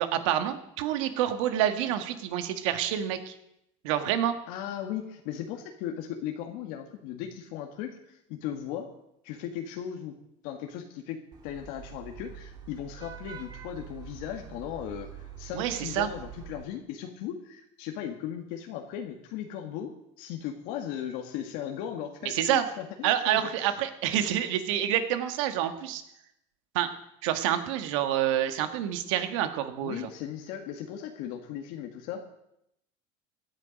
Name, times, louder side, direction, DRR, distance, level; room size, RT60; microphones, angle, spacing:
voice 1, 0.0-3.3 3.8-4.4 15.5-16.1 22.3-22.7 23.0-26.0 26.8-26.9 27.2-30.1, right 11 dB, 85° right, 9 dB, 1.6 m, -28 dB
voice 2, 4.5-8.9 9.2-10.1 10.4-23.4 29.8-32.2, left 10 dB, 70° left, 3 dB, 1.6 m, -37 dB
Vehicle horn car horn honking / Traffic noise roadway noise, 11.3-16.6, right 8 dB, 25° right, 1.8 m, -45 dB
17.0 x 10.5 x 5.2 m, 0.79 s
cardioid pair, 130°, 16 cm